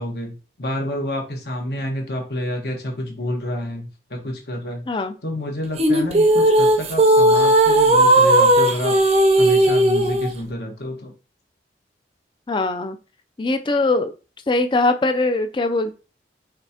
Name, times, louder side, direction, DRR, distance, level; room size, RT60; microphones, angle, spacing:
voice 1, 0.0-4.8 5.2-9.0 9.3-11.1, left 1 dB, 65° left, 1 dB, 1.3 m, -29 dB
sound 1, 5.8-10.3, right 1 dB, 35° right, 0.6 m, -15 dB
voice 2, 12.5-13.0 13.4-14.1 14.5-15.9, left 2 dB, 25° left, 8 dB, 0.4 m, -21 dB
5.2 x 3.5 x 2.8 m, 0.34 s
head